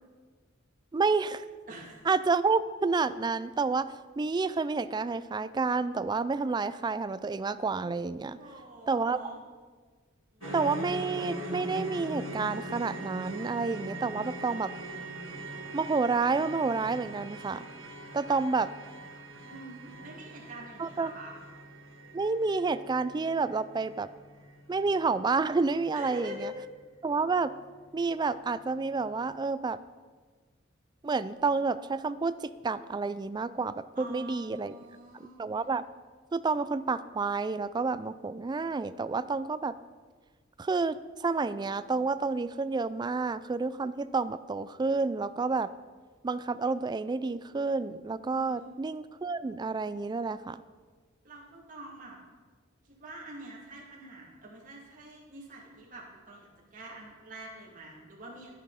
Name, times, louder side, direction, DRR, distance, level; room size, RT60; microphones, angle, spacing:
voice 1, 0.9-1.4 2.1-8.4 8.9-9.2 10.5-14.7 15.7-17.7 18.1-18.7 20.8-21.1 22.1-24.1 24.7-26.5 27.0-27.5 27.9-29.8 31.0-34.7 35.4-35.8 36.3-39.8 40.6-45.7 46.2-50.6, right 4 dB, 20° right, 14 dB, 0.3 m, -29 dB
voice 2, 1.7-2.0 8.3-9.4 10.3-10.5 14.1-14.7 18.3-18.4 19.4-21.4 25.9-26.6 33.9-35.4 48.3-48.7 51.2-52.2 53.0-58.5, right 1 dB, 40° right, -4 dB, 2.6 m, -46 dB
Gong, 10.4-29.4, left 1 dB, 80° left, 2.1 m, -48 dB
sound 1, 10.4-24.6 24.9-25.1 25.5-25.6, right 2 dB, 90° right, 1.3 m, -43 dB
11.5 x 11.0 x 4.2 m, 1.4 s
head